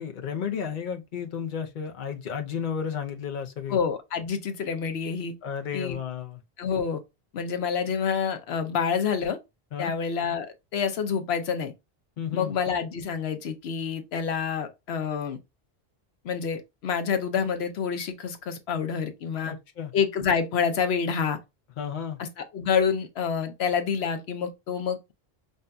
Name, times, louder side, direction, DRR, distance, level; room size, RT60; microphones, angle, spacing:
voice 1, 0.0-3.8 5.4-6.4 9.7-9.9 12.2-12.5 19.4-19.9 21.8-22.2, left 7 dB, 55° left, 0.7 m, -33 dB
voice 2, 3.7-5.3 5.7-6.0 6.6-7.0 7.3-9.4 9.8-11.7 12.3-15.4 16.2-19.5 19.9-21.4 22.2-25.1, left 6 dB, 80° left, 0.9 m, -28 dB
5.4 x 2.6 x 2.2 m
omnidirectional pair, 1.0 m